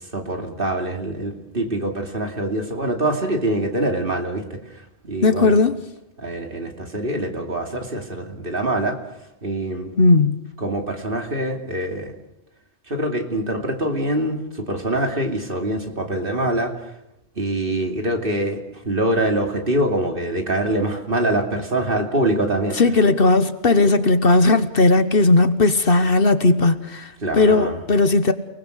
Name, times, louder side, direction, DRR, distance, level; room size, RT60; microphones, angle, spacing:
voice 1, 0.1-4.6 5.0-5.5 6.2-9.0 9.4-9.9 10.6-12.1 12.9-16.7 17.4-22.8 27.2-27.8, right 1 dB, 50° right, 2.9 m, -24 dB
voice 2, 5.2-5.8 10.0-10.4 22.7-28.3, left 3 dB, 55° left, 1.3 m, -17 dB
29.5 x 20.0 x 6.5 m
omnidirectional pair, 1.2 m